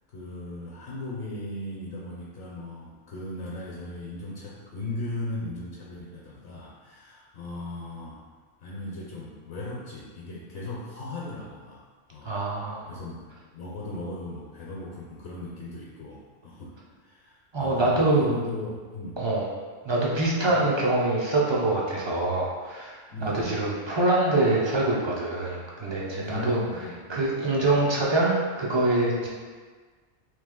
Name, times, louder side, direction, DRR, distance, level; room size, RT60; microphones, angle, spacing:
voice 1, 0.1-8.2 8.6-11.8 12.1-12.4 12.9-16.7 17.0-19.2 20.5-20.7 23.1-23.6 26.1-27.3 27.6-27.8 29.2-29.3, left 2 dB, 65° left, -5 dB, 0.8 m, -37 dB
voice 2, 12.2-13.0 17.5-18.4 19.2-19.5 19.8-26.6 27.1-29.3, right 2 dB, 35° right, -4 dB, 0.4 m, -25 dB
3.2 x 2.8 x 3.6 m, 1.5 s
omnidirectional pair, 1.2 m